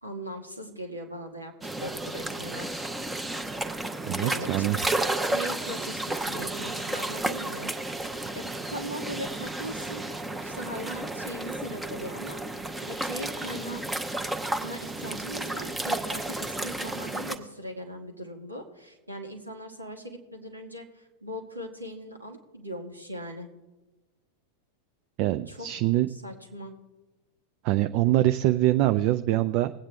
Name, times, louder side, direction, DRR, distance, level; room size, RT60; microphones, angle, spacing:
voice 1, 0.0-1.5 1.8-2.9 4.0-4.8 5.3-7.7 8.3-13.9 14.6-23.5 25.5-25.7 26.1-26.7, equal, 85° right, 2 dB, 1.8 m, -39 dB
sound 1, 1.6-17.4, right 2 dB, 10° right, 0.8 m, -32 dB
voice 2, 4.0-4.8 25.2-26.1 27.6-29.7, right 15 dB, 45° right, 11 dB, 0.4 m, -24 dB
20.0 x 8.7 x 3.4 m, 1.1 s
figure-of-eight pair, 90°, 0 cm